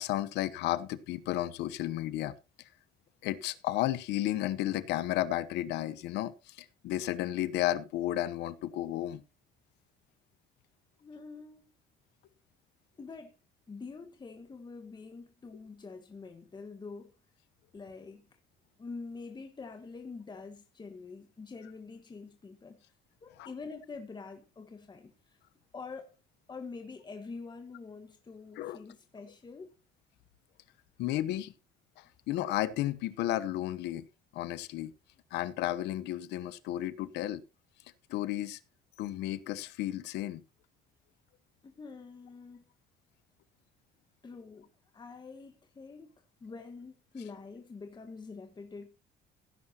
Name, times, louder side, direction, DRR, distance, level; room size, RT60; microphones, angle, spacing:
voice 1, 0.0-2.3 3.2-9.2 23.4-23.5 28.6-28.8 31.0-31.5 32.3-34.1 34.3-34.9 35.3-37.4 38.1-38.6 39.0-40.4, left 14 dB, 85° left, 1.0 m, -33 dB
voice 2, 11.0-11.7 13.0-13.3 13.7-17.2 17.7-18.2 18.8-22.8 23.2-25.4 25.7-26.1 26.5-29.7 41.6-42.7 44.2-44.7 44.9-48.9, left 4 dB, 25° left, 1.6 m, -46 dB
16.5 x 10.0 x 2.9 m
cardioid pair, 110°, 17 cm